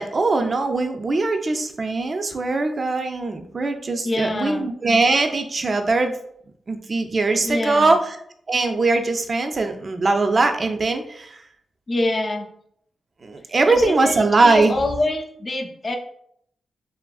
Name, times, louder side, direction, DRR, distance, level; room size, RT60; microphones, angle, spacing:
voice 1, 0.0-6.2 6.7-8.2 8.5-11.4 13.2-14.7, right 3 dB, 45° right, 6 dB, 0.3 m, -21 dB
voice 2, 4.0-4.7 7.4-8.0 11.9-12.5 13.7-16.0, left 2 dB, 45° left, 3 dB, 0.5 m, -25 dB
2.8 x 2.4 x 2.3 m, 0.69 s
cardioid pair, 60°, 0 cm